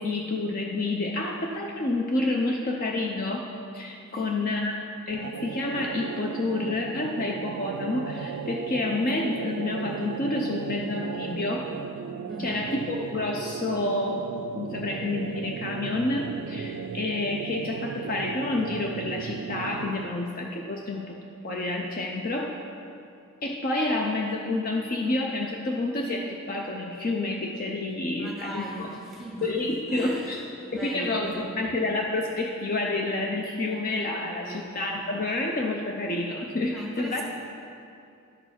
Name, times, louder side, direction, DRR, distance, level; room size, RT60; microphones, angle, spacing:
voice 1, 0.0-3.5 3.7-4.8 5.1-11.7 12.4-14.3 14.5-21.2 21.4-22.5 23.4-28.9 29.4-30.4 30.7-37.2, left 2 dB, 40° left, 1 dB, 0.5 m, -29 dB
sound 1, 5.1-20.2, right 7 dB, 85° right, 0.3 m, -36 dB
voice 2, 12.3-12.7 28.2-29.5 29.9-30.4 30.6-31.6 34.2-34.9 36.7-37.2, right 1 dB, ahead, -4 dB, 1.7 m, -39 dB
12.0 x 4.7 x 5.8 m, 2.6 s
head